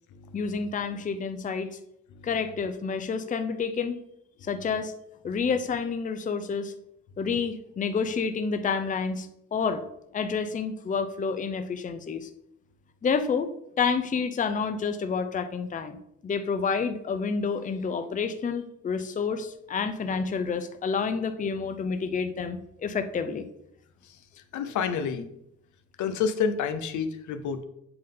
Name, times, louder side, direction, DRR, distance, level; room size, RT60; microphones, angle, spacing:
voice 1, 0.3-1.8 2.2-4.0 4.4-4.9 5.2-6.7 7.2-9.8 10.1-12.3 13.0-13.5 13.8-23.5, left 5 dB, 25° left, 9 dB, 0.5 m, -29 dB
voice 2, 24.5-25.3 26.0-27.6, left 6 dB, 75° left, 8 dB, 0.7 m, -29 dB
7.8 x 3.7 x 3.8 m, 0.78 s
cardioid pair, 90°, 30 cm